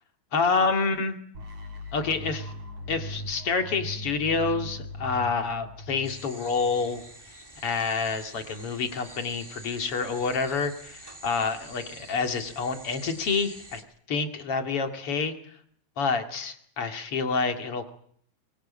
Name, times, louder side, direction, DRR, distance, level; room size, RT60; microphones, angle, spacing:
voice 1, 0.3-1.2 1.9-2.5 2.9-7.0 7.6-13.8 14.1-15.4 16.0-17.9, left 4 dB, 45° left, 6 dB, 3.0 m, -28 dB
sound 1, 1.3-7.3, equal, 50° right, 4.2 m, -40 dB
sound 2, 6.0-13.8, right 1 dB, 10° right, 1.4 m, -47 dB
23.5 x 23.5 x 8.7 m, 0.63 s
omnidirectional pair, 3.7 m